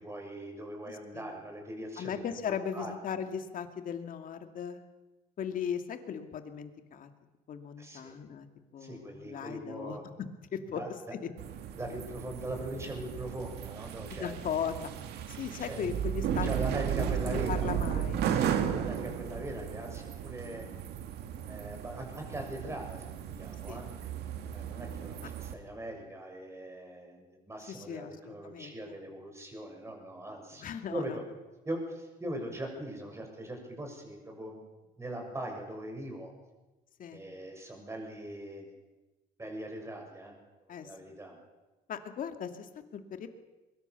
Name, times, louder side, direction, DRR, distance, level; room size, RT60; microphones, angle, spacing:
voice 1, 0.0-2.2 2.7-2.9 7.8-8.1 8.8-10.0 10.7-10.9 11.8-14.3 15.6-15.8 16.4-17.9 18.2-20.7 21.5-23.9 24.5-30.6 30.9-31.2 31.7-34.6 35.0-36.3 37.1-38.7 39.4-40.3 40.6-41.4, right 1 dB, 15° right, 2 dB, 7.3 m, -41 dB
voice 2, 0.8-1.3 2.0-4.8 5.4-7.1 7.5-8.5 8.7-10.0 10.5-10.8 14.1-14.8 15.3-16.5 17.0-18.2 23.7-23.8 27.7-29.0 30.6-31.2 37.0-37.2 40.7-41.1 41.9-43.3, left 7 dB, 55° left, 7 dB, 2.5 m, -38 dB
sound 1, 11.4-25.5, right 9 dB, 75° right, 2.2 m, -35 dB
23.0 x 22.0 x 7.1 m, 1.1 s
cardioid pair, 110°, 17 cm